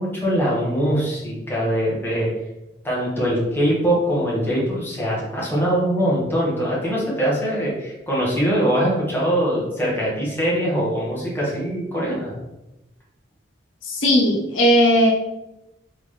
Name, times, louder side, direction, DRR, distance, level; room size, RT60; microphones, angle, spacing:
voice 1, 0.0-2.3 2.8-12.3, equal, 10° left, -6 dB, 1.3 m, -22 dB
voice 2, 13.8-15.1, equal, 85° left, -2 dB, 1.1 m, -17 dB
3.7 x 3.7 x 3.3 m, 0.95 s
head